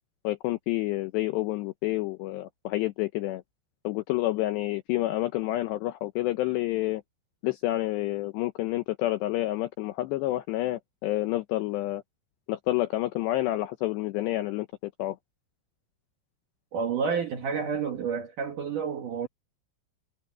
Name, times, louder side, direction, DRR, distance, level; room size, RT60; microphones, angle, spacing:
voice 1, 0.2-3.4 3.8-7.0 7.4-12.0 12.5-15.2, left 16 dB, 85° left, 2.4 m, -29 dB
voice 2, 16.7-19.3, right 6 dB, 60° right, 2.3 m, -30 dB
omnidirectional pair, 5.9 m